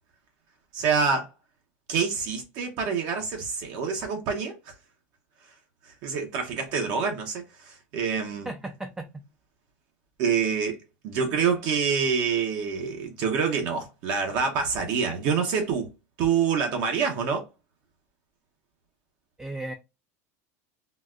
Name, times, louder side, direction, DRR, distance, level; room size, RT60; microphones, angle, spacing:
voice 1, 0.7-1.3 1.9-4.7 6.0-8.5 10.2-15.9 16.2-17.5, right 6 dB, 55° right, 0.8 m, -26 dB
voice 2, 8.5-9.2 19.4-19.7, right 2 dB, 10° right, 0.4 m, -35 dB
3.9 x 2.2 x 2.4 m
supercardioid pair, 140°, 8 cm